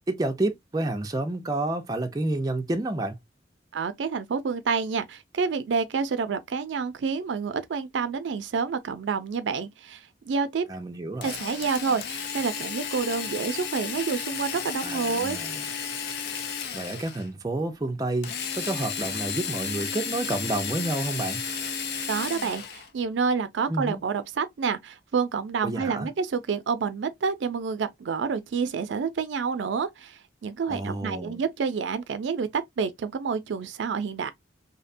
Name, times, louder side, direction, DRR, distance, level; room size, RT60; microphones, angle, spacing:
voice 1, 0.1-3.2 10.7-11.4 14.8-15.7 16.7-18.3 18.6-21.4 23.7-24.0 25.6-26.1 30.7-31.4, right 2 dB, 20° right, 0.4 m, -29 dB
voice 2, 3.7-10.6 11.2-15.4 22.1-34.3, right 5 dB, 90° right, 0.4 m, -28 dB
Drill, 11.2-17.3 18.2-22.9, left 6 dB, 60° left, 0.5 m, -33 dB
2.7 x 2.1 x 2.5 m
head